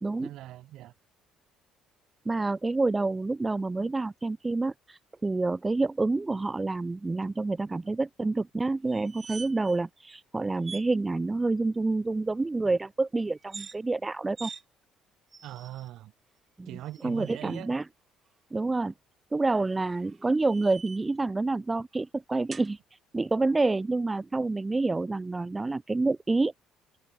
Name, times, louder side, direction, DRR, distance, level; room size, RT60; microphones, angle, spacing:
voice 1, 0.2-0.9 7.2-7.3 15.4-16.1 16.7-17.7, right 14 dB, 65° right, 1.7 m, -41 dB
voice 2, 2.3-14.5 16.6-16.7 17.0-17.8 18.5-18.9 19.3-22.8 23.1-26.5, right 3 dB, 20° right, 0.6 m, -28 dB
sound 1, 8.9-9.8 10.1-10.2 10.6-10.9 13.4-13.8 14.4-14.6 15.3-15.9 16.8-17.7 19.5-21.2 22.5-22.7, right 5 dB, 35° right, 1.5 m, -45 dB
hypercardioid pair, 55°, 0 cm